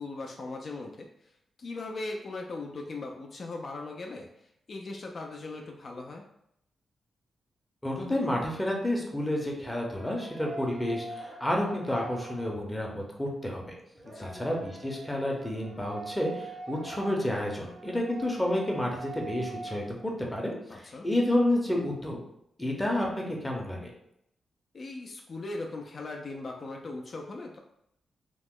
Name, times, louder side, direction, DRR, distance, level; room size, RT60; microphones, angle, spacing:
voice 1, 0.0-1.3 1.6-6.2 14.0-14.5 20.7-21.1 24.7-27.6, left 2 dB, 45° left, 1 dB, 0.3 m, -39 dB
voice 2, 7.8-13.7 14.2-22.2 22.6-23.9, left 1 dB, 10° left, -1 dB, 0.6 m, -30 dB
sound 1, 9.9-13.0 13.9-19.8, right 3 dB, 40° right, 0.6 m, -43 dB
2.9 x 2.0 x 3.6 m, 0.76 s
wide cardioid pair, 120°, 0 cm